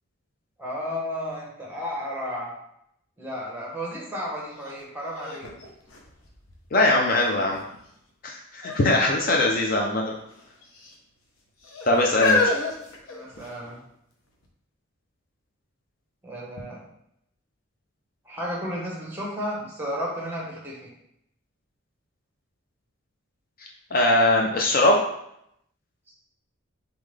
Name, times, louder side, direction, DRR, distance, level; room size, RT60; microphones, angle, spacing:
voice 1, 0.6-2.5 3.2-5.5 13.1-13.8 16.2-16.8 18.2-20.8 26.1-26.2, equal, 10° right, -3 dB, 1.1 m, -33 dB
sound 1, 4.6-4.7 5.2-6.7 7.3-7.8 8.6-9.0 9.3-9.4 10.3-10.9 11.6-13.7 14.4-14.5, left 3 dB, 70° left, 0.8 m, -28 dB
voice 2, 6.7-7.6 8.2-10.1 11.9-12.5 23.9-25.0, left 1 dB, 40° left, 0 dB, 0.5 m, -21 dB
3.9 x 3.7 x 3.3 m, 0.76 s
head